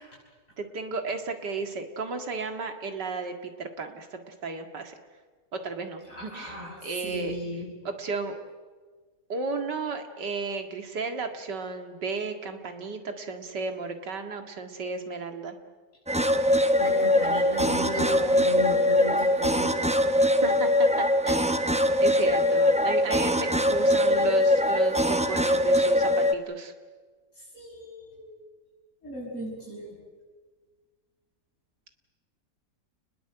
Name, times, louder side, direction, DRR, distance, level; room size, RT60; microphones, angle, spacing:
voice 1, 0.6-5.0 5.5-7.4 7.8-8.3 9.3-15.6 20.4-20.7 21.0-21.7 22.0-26.7, right 4 dB, 85° right, 6 dB, 2.6 m, -34 dB
voice 2, 6.1-6.8 7.0-7.7 16.8-19.8 27.5-28.4 29.0-30.0, left 1 dB, 45° left, -7 dB, 6.8 m, -35 dB
sound 1, 16.1-26.3, left 1 dB, 5° right, 0.5 m, -22 dB
29.5 x 21.0 x 8.0 m, 1.4 s
omnidirectional pair, 1.8 m